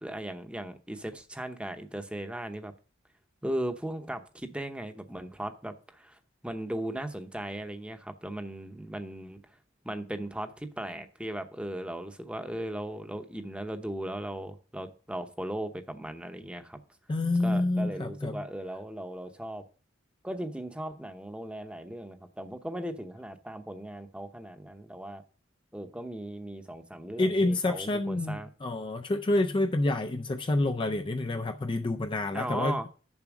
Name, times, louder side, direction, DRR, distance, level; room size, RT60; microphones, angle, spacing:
voice 1, 0.0-2.7 3.4-9.4 9.8-16.8 17.4-19.6 20.2-25.2 25.7-28.5 32.3-32.9, right 1 dB, 5° right, 0.8 m, -37 dB
voice 2, 17.1-18.4 27.2-32.8, left 2 dB, 25° left, 0.4 m, -28 dB
7.1 x 5.9 x 6.0 m
head